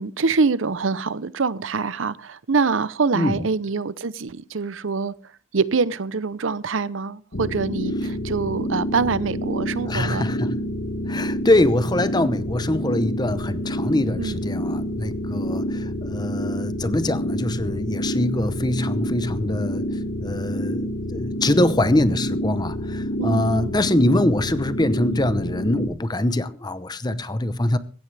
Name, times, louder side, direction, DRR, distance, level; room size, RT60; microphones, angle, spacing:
voice 1, 0.0-5.1 5.5-10.3 14.2-14.4 23.2-23.7, right 4 dB, 75° right, 0.7 m, -25 dB
voice 2, 3.1-3.5 9.9-10.6 11.1-27.8, left 1 dB, 20° left, 0.8 m, -23 dB
sound 1, 7.3-25.9, equal, 55° left, 1.8 m, -28 dB
16.5 x 14.5 x 3.4 m
head